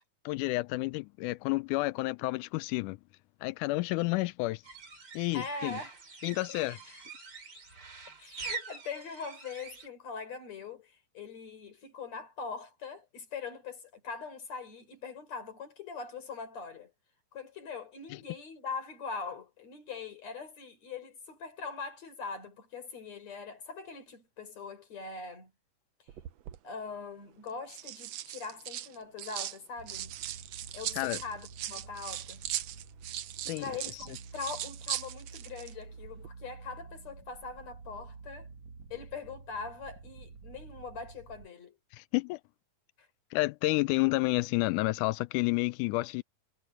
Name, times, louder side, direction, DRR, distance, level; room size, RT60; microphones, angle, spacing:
voice 1, 0.3-3.0 3.4-4.6 5.1-5.8 6.2-6.8 31.0-31.2 33.5-33.7 41.9-42.4 43.3-46.2, left 21 dB, 85° left, 1.8 m, -30 dB
sound 1, 4.6-9.9, right 4 dB, 30° right, 4.0 m, -44 dB
voice 2, 5.3-6.0 6.3-6.4 8.2-16.9 17.3-25.5 26.0-26.1 26.6-30.2 30.7-32.4 33.4-38.5 38.9-41.8 43.0-43.1, left 4 dB, 50° left, 5.5 m, -42 dB
sound 2, 26.1-26.6 27.5-29.6 29.9-35.7 36.0-36.3, right 12 dB, 80° right, 1.5 m, -39 dB
sound 3, 29.8-41.5, right 4 dB, 50° right, 2.9 m, -50 dB
omnidirectional pair, 4.1 m